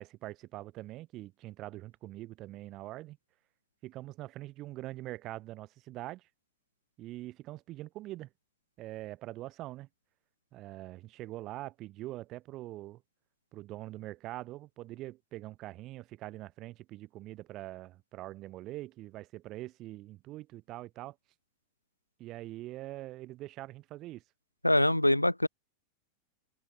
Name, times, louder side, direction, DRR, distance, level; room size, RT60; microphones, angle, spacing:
voice 1, 0.0-3.2 3.8-6.3 7.0-8.3 8.8-9.9 10.5-13.0 13.5-21.2 22.2-24.2, right 16 dB, 35° right, 7.6 m, -43 dB
voice 2, 24.6-25.5, left 1 dB, 85° left, 2.2 m, -24 dB
figure-of-eight pair, 90°, 0 cm